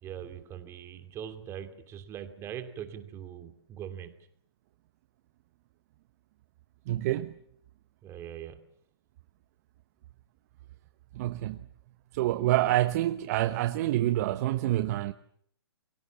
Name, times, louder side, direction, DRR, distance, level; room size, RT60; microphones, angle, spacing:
voice 1, 0.0-4.2 8.0-8.6, right 9 dB, 20° right, 2.7 m, -41 dB
voice 2, 6.9-7.4 11.1-11.6 12.1-15.1, right 15 dB, 35° right, 1.0 m, -27 dB
30.0 x 23.5 x 7.2 m
hypercardioid pair, 145°, 14 cm